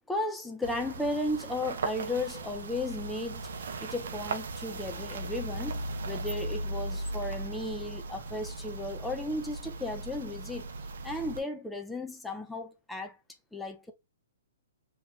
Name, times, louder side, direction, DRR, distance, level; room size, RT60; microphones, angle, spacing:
voice 1, 0.0-10.7 11.0-13.2 13.5-13.9, left 2 dB, 5° left, 0.5 m, -35 dB
sound 1, 0.6-11.4, right 2 dB, 70° right, 0.6 m, -37 dB
3.0 x 2.2 x 3.1 m
hypercardioid pair, 140°, 0 cm